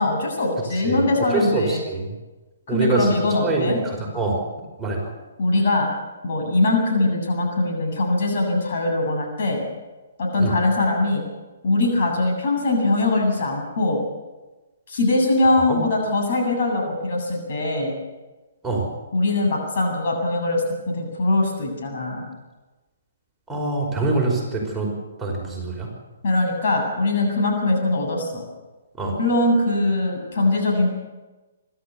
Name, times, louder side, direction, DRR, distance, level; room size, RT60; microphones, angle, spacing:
voice 1, 0.0-1.8 2.7-3.8 5.4-5.9 6.2-9.6 10.2-11.2 11.6-14.0 14.9-17.9 19.1-22.2 26.2-28.4 29.2-30.9, left 2 dB, 55° left, 1 dB, 7.8 m, -21 dB
voice 2, 0.8-2.1 2.7-3.1 3.4-4.4 4.8-5.1 10.4-10.5 15.6-15.8 18.6-18.9 23.5-24.9 25.2-25.9 29.0-29.2, right 3 dB, 10° right, -3 dB, 5.3 m, -24 dB
25.5 x 12.5 x 8.5 m, 1.2 s
hypercardioid pair, 135°, 0 cm